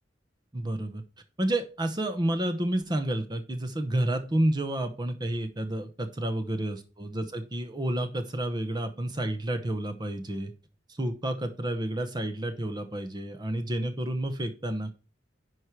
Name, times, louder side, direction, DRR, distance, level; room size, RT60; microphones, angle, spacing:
voice 1, 0.5-1.0 1.4-10.5 10.9-14.9, right 1 dB, 25° right, 8 dB, 0.9 m, -30 dB
10.5 x 4.8 x 4.6 m, 0.33 s
head